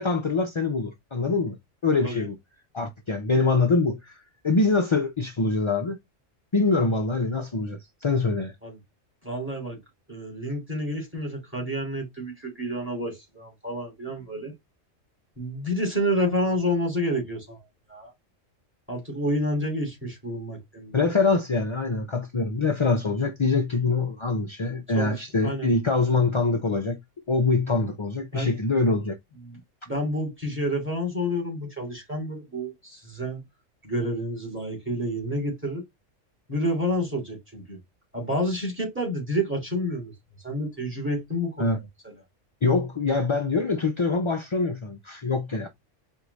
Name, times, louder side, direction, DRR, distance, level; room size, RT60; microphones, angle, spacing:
voice 1, 0.0-1.6 1.8-2.4 2.7-6.0 6.5-8.5 20.9-27.0 27.3-29.2 41.6-41.8 42.6-45.7, left 3 dB, 40° left, 0.4 m, -24 dB
voice 2, 9.2-9.8 10.1-14.5 15.4-17.6 17.9-18.1 18.9-21.2 24.9-25.2 25.4-25.8 28.3-28.5 29.4-29.6 29.9-33.4 33.8-35.8 36.5-37.8 38.1-40.1 40.4-42.1, equal, 10° right, 2.6 m, -29 dB
4.7 x 2.7 x 3.9 m
omnidirectional pair, 1.3 m